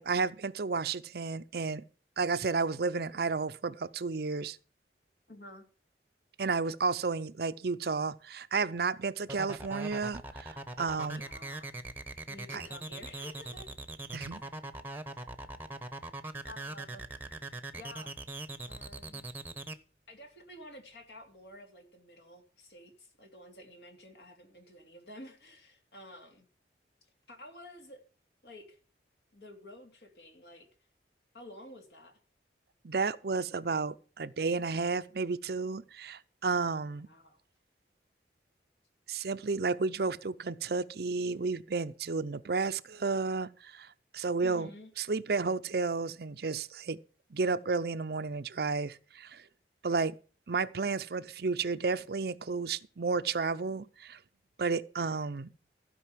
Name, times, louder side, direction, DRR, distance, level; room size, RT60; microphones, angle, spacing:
voice 1, 0.0-1.8 2.2-4.6 6.4-11.2 12.5-12.6 14.1-14.4 32.8-37.1 39.1-44.7 45.0-47.0 47.3-49.4 49.8-50.2 50.5-54.2 54.6-55.5, right 4 dB, 60° right, 0.6 m, -32 dB
voice 2, 5.3-5.6 11.0-11.7 12.3-13.8 16.5-17.0 17.7-18.1 18.6-19.3 20.1-26.5 27.3-28.0 28.4-28.8 29.3-30.7 31.3-32.2 36.8-37.4 44.4-44.9, left 1 dB, 60° left, 3.0 m, -51 dB
sound 1, 9.3-19.7, right 2 dB, 10° right, 1.0 m, -41 dB
15.0 x 5.4 x 7.4 m
head